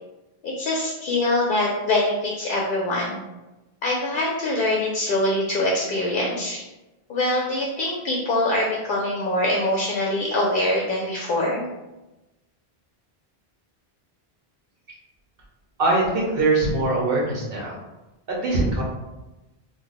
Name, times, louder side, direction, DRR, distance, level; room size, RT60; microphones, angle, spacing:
voice 1, 0.4-3.2 3.8-6.6 7.1-11.7, left 1 dB, 60° left, -2 dB, 0.6 m, -24 dB
voice 2, 15.8-17.8 18.3-18.8, right 2 dB, 65° right, -3 dB, 1.0 m, -22 dB
2.4 x 2.0 x 3.9 m, 1.0 s
omnidirectional pair, 1.1 m